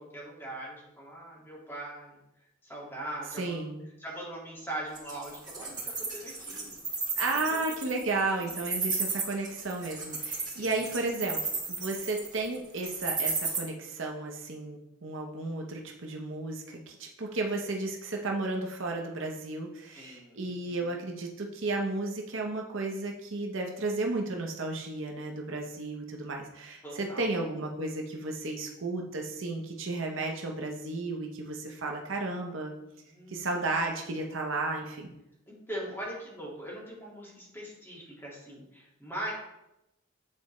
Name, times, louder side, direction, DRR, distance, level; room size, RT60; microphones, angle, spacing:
voice 1, 0.0-2.2 2.6-3.7 4.0-5.8 6.1-6.8 7.2-7.6 8.4-8.6 10.6-10.9 19.9-21.0 26.8-27.3 33.1-33.8 35.5-39.3, right 1 dB, 10° left, -5 dB, 1.9 m, -41 dB
voice 2, 3.4-3.8 7.2-11.4 11.7-32.7 33.3-35.1, right 2 dB, 65° right, 1 dB, 0.8 m, -33 dB
Wild animals, 4.9-13.6, right 4 dB, 20° right, 2.2 m, -33 dB
8.5 x 4.1 x 3.1 m, 0.88 s
head